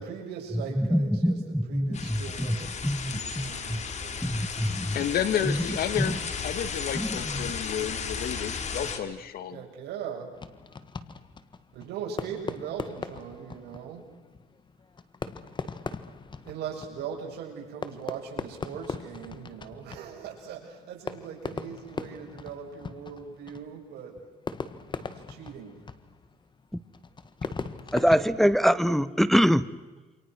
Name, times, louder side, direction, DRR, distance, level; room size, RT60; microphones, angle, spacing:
voice 1, 0.0-2.7 3.1-4.6 5.3-5.5 9.5-10.4 11.7-14.1 16.4-24.2 25.0-25.8, right 7 dB, 75° right, 7.0 m, -40 dB
voice 2, 0.8-2.6 2.8-3.8 4.2-5.0 5.5-5.6 6.9-7.1 27.9-29.7, equal, ahead, 0.8 m, -24 dB
sound 1, 1.9-9.0, left 5 dB, 45° left, 3.0 m, -34 dB
voice 3, 4.9-9.6, left 9 dB, 65° left, 2.0 m, -31 dB
Fireworks, 10.3-29.2, left 4 dB, 25° left, 1.6 m, -40 dB
28.5 x 26.5 x 6.3 m
cardioid pair, 110°, 17 cm